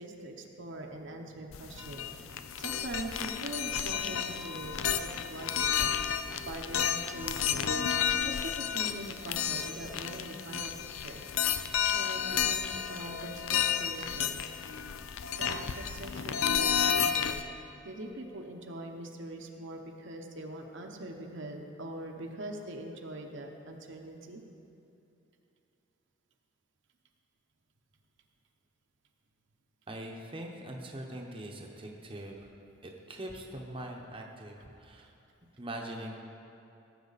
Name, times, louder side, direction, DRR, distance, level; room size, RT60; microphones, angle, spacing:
voice 1, 0.0-5.9 6.5-11.2 11.6-14.4 15.4-24.4, right 1 dB, 60° right, 2 dB, 0.9 m, -43 dB
sound 1, 1.5-17.4, left 8 dB, 75° left, 0.5 m, -31 dB
voice 2, 29.9-32.5 32.8-35.1 35.6-36.2, right 1 dB, 25° right, 1 dB, 0.9 m, -42 dB
17.5 x 7.7 x 4.1 m, 2.8 s
head